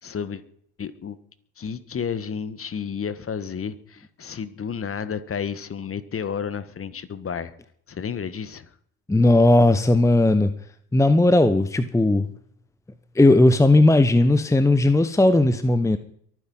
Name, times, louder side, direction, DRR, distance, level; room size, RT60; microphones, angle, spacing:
voice 1, 0.0-0.4 0.8-1.2 1.6-7.5 7.9-8.7, left 7 dB, 30° left, 1.7 m, -31 dB
voice 2, 9.1-10.6 10.9-12.3 13.1-16.0, left 2 dB, 5° left, 1.0 m, -17 dB
23.5 x 9.7 x 5.7 m
hypercardioid pair, 70°, 46 cm